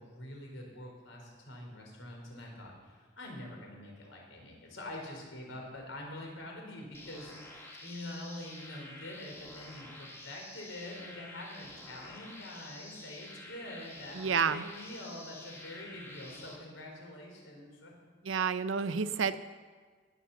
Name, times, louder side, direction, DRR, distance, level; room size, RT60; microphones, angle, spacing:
voice 1, 0.0-17.9, left 1 dB, 80° left, 0 dB, 4.2 m, -45 dB
sound 1, 6.9-16.6, left 1 dB, 15° left, 1.9 m, -49 dB
voice 2, 14.1-14.6 18.2-19.4, right 6 dB, 85° right, 13 dB, 0.6 m, -29 dB
19.0 x 7.2 x 7.1 m, 1.5 s
head